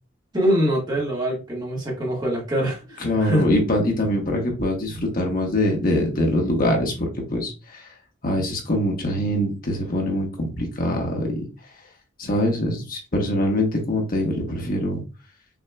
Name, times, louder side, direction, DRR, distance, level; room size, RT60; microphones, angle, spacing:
voice 1, 0.3-3.4, equal, 20° right, -3 dB, 1.6 m, -24 dB
voice 2, 3.0-7.9 8.2-11.4 12.2-15.0, left 1 dB, 45° left, 1 dB, 1.2 m, -23 dB
6.0 x 2.8 x 2.3 m, 0.32 s
head